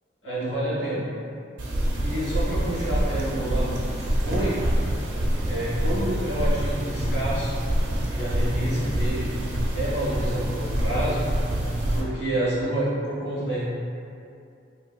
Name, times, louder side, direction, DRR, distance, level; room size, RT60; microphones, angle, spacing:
voice 1, 0.2-1.0 2.0-4.5 5.4-7.5 8.0-9.3 9.7-11.2 11.9-13.6, right 1 dB, 65° left, -9 dB, 1.2 m, -28 dB
sound 1, 1.6-12.0, right 1 dB, 80° right, 0.5 m, -26 dB
3.3 x 2.6 x 2.2 m, 2.5 s
head